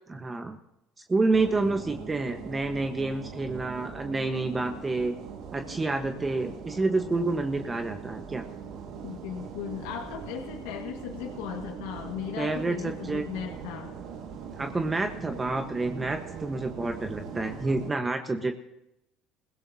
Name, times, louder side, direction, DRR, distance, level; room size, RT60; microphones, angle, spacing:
voice 1, 0.1-0.6 1.1-5.1 5.5-8.4 12.4-13.2 14.6-18.5, right 3 dB, 20° right, 6 dB, 1.3 m, -28 dB
sound 1, 1.3-17.9, right 6 dB, 65° right, 2.0 m, -41 dB
voice 2, 9.0-13.9, left 9 dB, 80° left, 1 dB, 1.8 m, -37 dB
29.5 x 16.5 x 2.8 m, 0.84 s
supercardioid pair, 85°, 0 cm